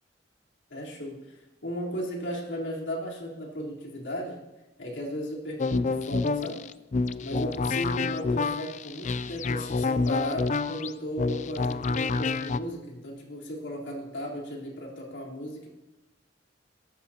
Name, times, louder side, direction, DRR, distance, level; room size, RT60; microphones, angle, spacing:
voice 1, 0.7-4.4 4.8-6.6 7.2-15.7, equal, 85° left, -4 dB, 3.8 m, -35 dB
sound 1, 5.6-12.6, left 4 dB, 40° left, 0.4 m, -28 dB
22.5 x 13.0 x 2.9 m, 1.0 s
head